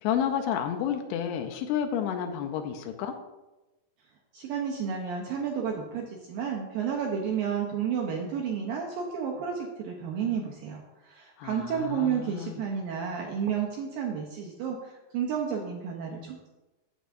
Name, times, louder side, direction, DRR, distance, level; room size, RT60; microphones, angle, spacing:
voice 1, 0.0-3.2 11.4-12.6, left 9 dB, 80° left, 5 dB, 2.5 m, -30 dB
voice 2, 4.3-16.5, right 7 dB, 80° right, -1 dB, 2.1 m, -31 dB
9.1 x 8.0 x 2.5 m, 1.1 s
omnidirectional pair, 4.9 m